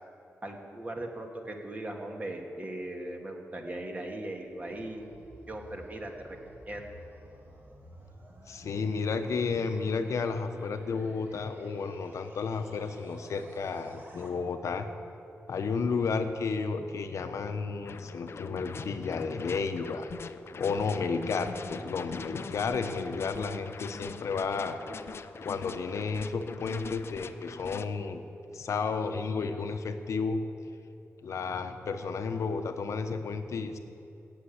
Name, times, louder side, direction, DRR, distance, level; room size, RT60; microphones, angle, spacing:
voice 1, 0.4-5.0 5.5-6.4 6.7-7.0, right 1 dB, 30° right, 2 dB, 1.7 m, -39 dB
sound 1, 4.3-14.3, right 1 dB, 45° right, 2.5 m, -52 dB
voice 2, 8.5-14.9 15.5-20.1 20.6-24.8 25.4-28.2 28.5-30.4 31.2-33.8, left 4 dB, 75° left, 8 dB, 0.9 m, -32 dB
sound 2, 17.8-27.9, left 5 dB, 55° left, 0.5 m, -43 dB
16.5 x 6.8 x 8.5 m, 2.9 s
wide cardioid pair, 105°, 5 cm